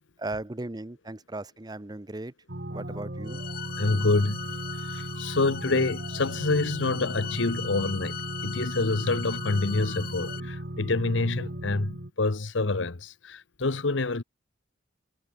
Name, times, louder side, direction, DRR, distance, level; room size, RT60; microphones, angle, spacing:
voice 1, 0.2-2.3 2.7-3.4, right 2 dB, 20° right, 0.8 m, -37 dB
sound 1, 2.5-12.1, right 1 dB, 55° right, 2.4 m, -36 dB
sound 2, 3.3-10.4, left 10 dB, 50° left, 1.0 m, -40 dB
voice 2, 3.8-4.4 4.9-14.2, left 3 dB, 70° left, 1.1 m, -27 dB
head